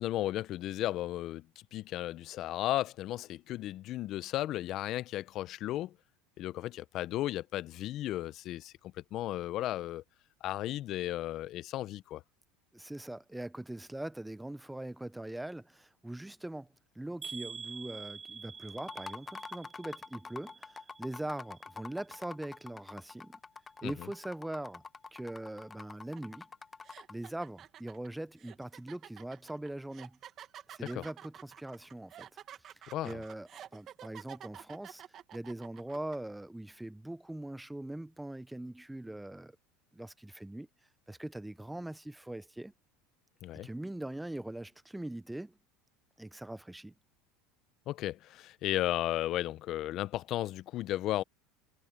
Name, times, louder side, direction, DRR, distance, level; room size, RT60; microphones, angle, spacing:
voice 1, 0.0-1.5 1.7-6.0 6.4-10.0 10.4-12.2 23.8-24.1 30.9-31.0 32.9-33.2 43.4-43.7 47.9-51.2, left 14 dB, 55° left, 0.8 m, -34 dB
voice 2, 12.7-16.7 16.9-23.4 23.8-24.8 25.1-26.5 27.1-30.2 30.7-32.3 33.0-35.0 35.3-39.5 39.9-40.7 41.1-42.7 43.6-45.6 46.2-46.9, right 1 dB, 5° right, 0.9 m, -41 dB
sound 1, 17.2-21.2 21.5-22.1 22.6-22.7 23.0-23.1, right 6 dB, 30° right, 2.5 m, -47 dB
sound 2, 18.7-27.3, left 4 dB, 20° left, 0.9 m, -46 dB
sound 3, 26.2-26.3 26.8-36.2, right 10 dB, 45° right, 2.3 m, -50 dB
hypercardioid pair, 90°, 0 cm